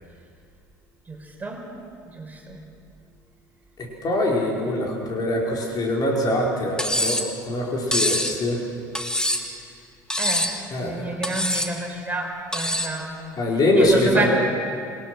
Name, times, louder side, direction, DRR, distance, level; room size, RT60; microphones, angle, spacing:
voice 1, 1.1-1.6 2.1-2.6 10.2-13.1 13.7-14.3, right 2 dB, 15° right, 1 dB, 5.2 m, -29 dB
voice 2, 3.8-8.6 10.7-11.2 12.6-12.8 13.4-14.3, left 1 dB, 40° left, -1 dB, 5.1 m, -23 dB
Cutlery silverware, 6.8-7.3 7.9-8.4 9.0-9.6 10.1-10.6 11.2-11.7 12.5-13.0, left 1 dB, 5° left, 2.2 m, -24 dB
27.5 x 18.5 x 6.4 m, 2.5 s
hypercardioid pair, 65°, 10 cm